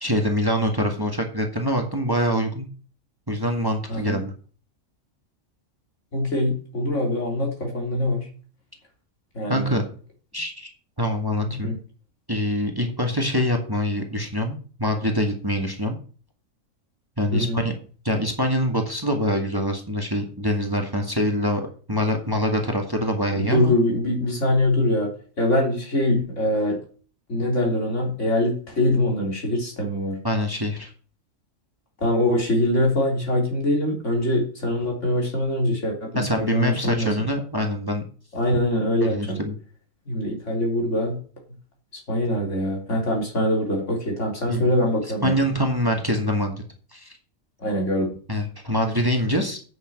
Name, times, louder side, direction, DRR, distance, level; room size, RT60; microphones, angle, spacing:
voice 1, 0.0-2.7 3.3-4.3 9.5-9.8 10.3-10.7 11.0-11.7 12.3-16.0 17.2-17.7 18.0-21.6 21.9-23.7 30.2-30.9 36.2-38.0 39.0-39.6 44.5-44.7 45.2-46.6 46.9-47.1 48.3-49.6, equal, 15° right, 3 dB, 1.9 m, -24 dB
voice 2, 3.9-4.2 6.1-8.3 9.3-9.7 11.6-11.8 17.3-17.6 23.3-25.1 25.4-26.8 27.3-30.2 32.0-37.2 38.3-39.4 40.1-41.2 41.9-45.3 47.6-48.1, left 1 dB, 65° left, 1 dB, 3.9 m, -23 dB
9.0 x 6.6 x 7.7 m, 0.41 s
omnidirectional pair, 1.4 m